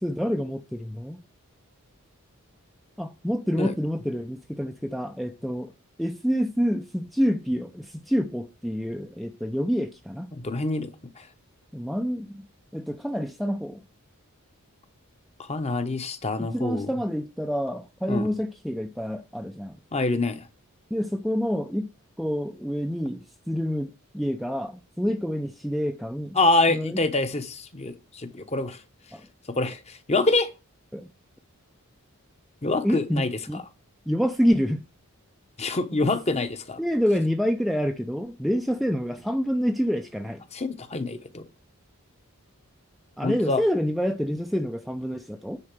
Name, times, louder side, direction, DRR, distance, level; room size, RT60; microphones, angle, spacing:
voice 1, 0.0-1.2 3.0-5.7 6.0-10.3 11.7-12.5 12.7-13.8 16.4-19.8 20.9-21.9 22.2-26.4 26.7-27.0 29.1-29.3 30.9-31.1 32.8-33.6 34.1-34.8 36.8-40.4 43.2-45.6, equal, ahead, 0.5 m, -27 dB
voice 2, 10.3-10.9 11.2-11.3 15.4-16.9 18.1-18.3 19.9-20.5 26.3-28.8 29.5-30.5 32.6-33.6 35.6-36.8 40.5-41.4 43.2-43.6, left 2 dB, 30° left, 1.0 m, -26 dB
9.8 x 4.3 x 7.5 m
head